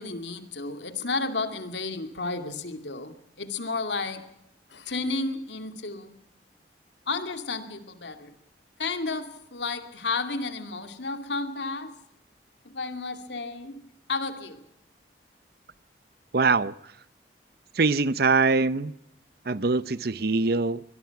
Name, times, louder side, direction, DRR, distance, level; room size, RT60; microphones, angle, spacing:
voice 1, 0.0-4.2 4.7-6.1 7.1-8.3 8.8-12.0 12.6-13.8 14.1-14.6, left 3 dB, 85° left, 8 dB, 2.4 m, -32 dB
voice 2, 16.3-16.7 17.7-18.9 19.5-20.8, right 4 dB, 60° right, 17 dB, 0.7 m, -23 dB
23.0 x 21.5 x 5.9 m, 0.76 s
head